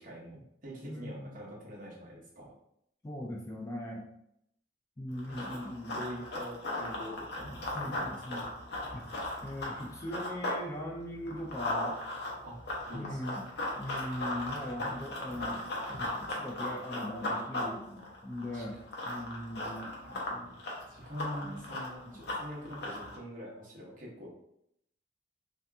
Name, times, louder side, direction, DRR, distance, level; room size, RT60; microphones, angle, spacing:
voice 1, 0.0-2.5 5.3-5.6 5.9-7.5 7.8-8.4 12.4-12.6 12.9-13.2 18.5-18.8 20.9-24.3, equal, 45° right, -4 dB, 0.9 m, -44 dB
voice 2, 0.8-1.4 3.0-4.1 5.0-6.0 7.4-8.5 8.9-9.1 9.4-12.0 12.9-13.5 13.8-18.8 19.1-20.5 21.4-21.6 22.1-22.2, left 1 dB, 15° left, -1 dB, 0.3 m, -40 dB
Run, 5.1-10.6 11.0-23.2, left 1 dB, 60° left, 0.8 m, -37 dB
2.8 x 2.4 x 3.3 m, 0.75 s
head